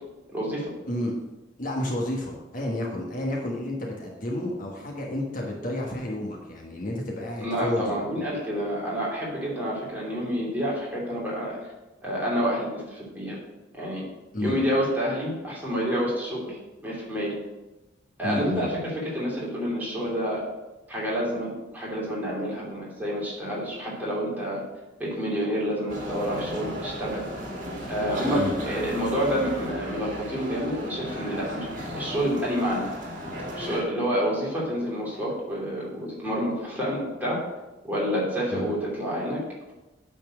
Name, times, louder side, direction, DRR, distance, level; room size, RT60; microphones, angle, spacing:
voice 1, 0.3-0.7 7.4-11.6 12.0-13.4 13.7-14.0 14.4-17.3 18.2-20.4 20.9-24.6 25.0-27.2 27.9-31.7 31.9-32.9 33.6-37.4 37.8-39.4, equal, 10° right, -6 dB, 2.9 m, -28 dB
voice 2, 0.8-1.2 1.6-8.0 14.3-14.6 18.2-18.7 28.4-28.6 38.5-38.7, left 1 dB, 50° left, -1 dB, 1.4 m, -31 dB
sound 1, 25.9-33.8, equal, 45° right, 2.3 m, -35 dB
9.1 x 4.4 x 6.2 m, 1.1 s
head